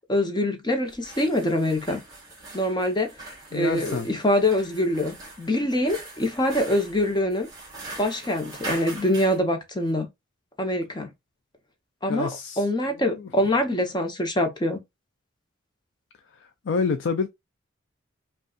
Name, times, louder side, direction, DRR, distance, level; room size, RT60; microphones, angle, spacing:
voice 1, 0.1-2.0 2.5-3.1 3.5-7.5 8.0-10.1 10.6-11.1 12.0-12.3 12.6-14.8, left 1 dB, 20° left, 0.9 m, -24 dB
sound 1, 0.8-9.4, right 2 dB, 20° right, 1.7 m, -42 dB
voice 2, 3.5-4.1 12.1-12.6 13.0-13.3 16.7-17.3, left 5 dB, 75° left, 0.4 m, -27 dB
5.2 x 2.4 x 2.4 m
head